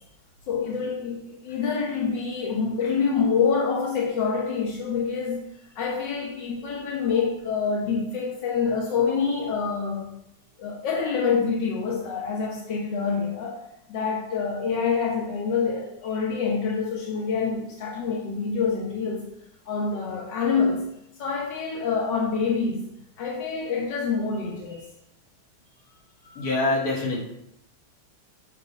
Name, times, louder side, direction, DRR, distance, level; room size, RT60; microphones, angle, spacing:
voice 1, 0.5-5.4 5.8-10.2 10.6-13.6 13.9-19.3 19.7-20.9 21.2-22.9 23.2-24.8 26.2-26.5, left 5 dB, 85° left, -3 dB, 1.6 m, -26 dB
voice 2, 26.4-27.2, left 2 dB, 60° left, -4 dB, 2.0 m, -25 dB
7.1 x 3.1 x 5.3 m, 0.82 s
omnidirectional pair, 1.9 m